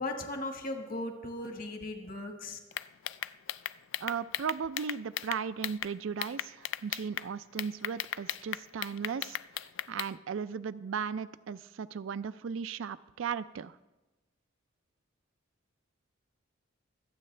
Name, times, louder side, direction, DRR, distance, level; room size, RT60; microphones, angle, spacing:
voice 1, 0.0-2.6, left 2 dB, 45° left, 5 dB, 1.4 m, -37 dB
sound 1, 2.7-5.9 6.2-7.3 7.6-10.1, left 12 dB, 65° left, 0.3 m, -36 dB
voice 2, 4.0-13.8, right 6 dB, 75° right, 14 dB, 0.4 m, -36 dB
24.0 x 8.6 x 3.3 m, 1.1 s
head